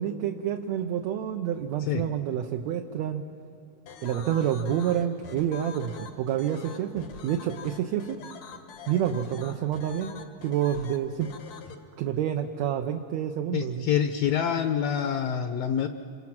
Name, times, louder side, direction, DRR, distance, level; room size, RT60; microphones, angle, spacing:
voice 1, 0.0-3.2 4.0-8.2 8.9-10.2 10.4-11.3 12.0-13.9, right 10 dB, 70° right, 5 dB, 1.9 m, -28 dB
sound 1, 3.9-11.8, left 6 dB, 85° left, 3.2 m, -44 dB
voice 2, 13.5-15.9, left 8 dB, 70° left, 7 dB, 1.7 m, -26 dB
27.0 x 26.5 x 6.0 m, 2.6 s
omnidirectional pair, 3.6 m